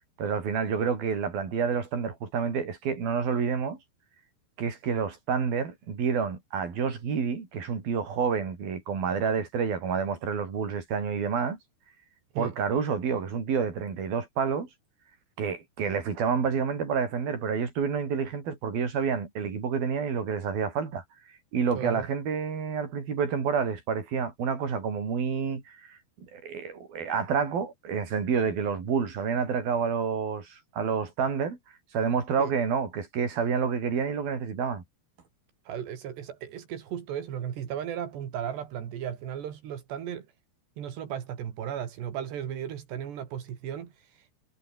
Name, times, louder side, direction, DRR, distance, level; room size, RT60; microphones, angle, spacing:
voice 1, 0.2-3.8 4.6-11.6 12.4-14.7 15.4-21.0 21.5-26.0 26.3-31.6 31.9-34.8, right 6 dB, 60° right, 6.6 m, -29 dB
voice 2, 21.7-22.1 32.4-32.5 35.7-40.3 40.8-44.3, right 9 dB, 85° right, 4.9 m, -35 dB
omnidirectional pair, 4.7 m